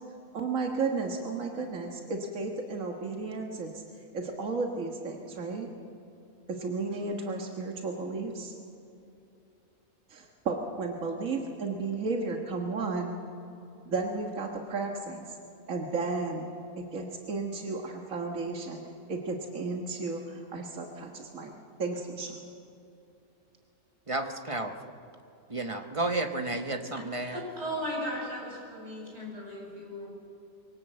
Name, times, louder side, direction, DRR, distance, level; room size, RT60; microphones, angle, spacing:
voice 1, 0.3-3.8 4.1-5.7 6.5-8.5 10.1-13.2 13.9-15.3 15.7-16.5 16.8-18.8 19.1-21.5 21.8-22.4, right 3 dB, 80° right, 2 dB, 1.9 m, -33 dB
voice 2, 24.1-24.7 25.5-27.4, right 2 dB, 25° right, 5 dB, 1.1 m, -32 dB
voice 3, 26.9-30.1, equal, 55° right, -3 dB, 7.6 m, -37 dB
24.5 x 17.5 x 7.8 m, 2.7 s
omnidirectional pair, 1.4 m